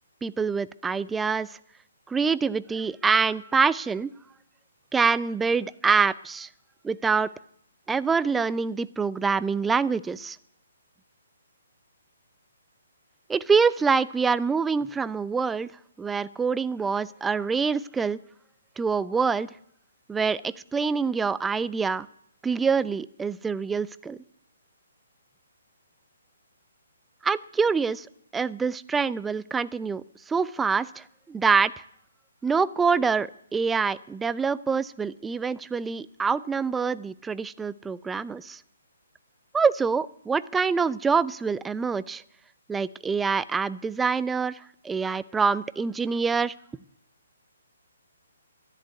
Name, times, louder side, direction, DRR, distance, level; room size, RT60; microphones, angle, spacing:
voice 1, 0.2-1.5 2.1-4.1 4.9-6.5 6.8-7.3 7.9-10.4 13.3-15.7 16.0-18.2 18.8-19.5 20.1-22.1 22.4-24.2 27.2-28.1 28.3-31.7 32.4-38.6 39.5-42.2 42.7-44.6 44.8-46.5, right 5 dB, 10° right, 17 dB, 0.5 m, -25 dB
13.5 x 11.0 x 9.5 m, 0.68 s
hypercardioid pair, 140°, 0 cm